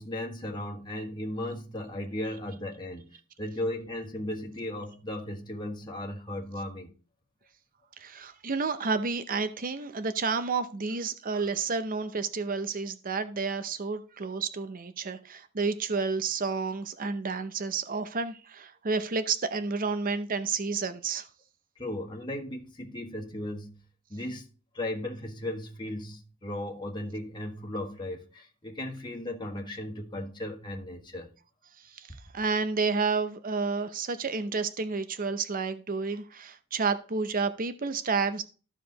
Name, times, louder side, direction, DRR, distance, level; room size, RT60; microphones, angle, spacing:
voice 1, 0.0-6.9 21.8-23.8 24.1-24.5 24.7-31.3, left 1 dB, 20° left, 1.4 m, -36 dB
voice 2, 8.0-21.3 31.9-38.4, right 4 dB, 40° right, 0.7 m, -30 dB
14.0 x 5.0 x 3.9 m
head